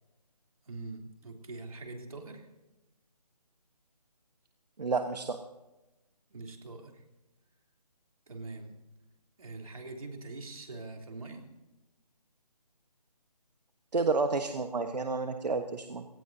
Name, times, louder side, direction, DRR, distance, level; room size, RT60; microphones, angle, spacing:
voice 1, 0.7-2.5 6.3-7.0 8.3-8.7 9.4-11.5, right 3 dB, 60° right, 2 dB, 3.3 m, -43 dB
voice 2, 4.8-5.4 13.9-16.0, right 3 dB, 80° right, 6 dB, 1.3 m, -30 dB
27.0 x 18.5 x 2.8 m, 1.0 s
hypercardioid pair, 180°, 21 cm